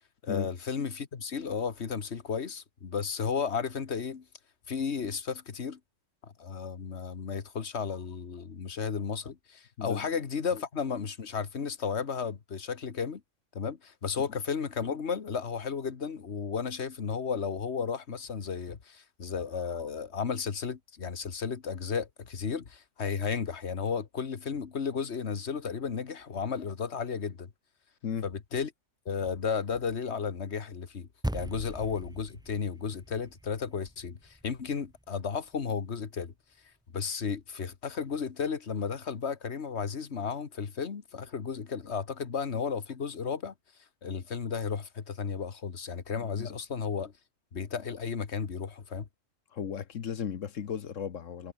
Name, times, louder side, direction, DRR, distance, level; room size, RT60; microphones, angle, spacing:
voice 1, 0.2-4.2 4.7-5.8 6.2-13.2 13.5-27.5 28.2-28.7 29.0-36.3 36.9-43.5 44.0-47.1 47.5-49.1, left 6 dB, 60° left, 1.7 m, -33 dB
sound 1, 31.2-35.8, right 1 dB, 5° right, 0.7 m, -40 dB
voice 2, 46.1-46.5 49.5-51.5, left 8 dB, 75° left, 1.5 m, -35 dB
omnidirectional pair, 1.3 m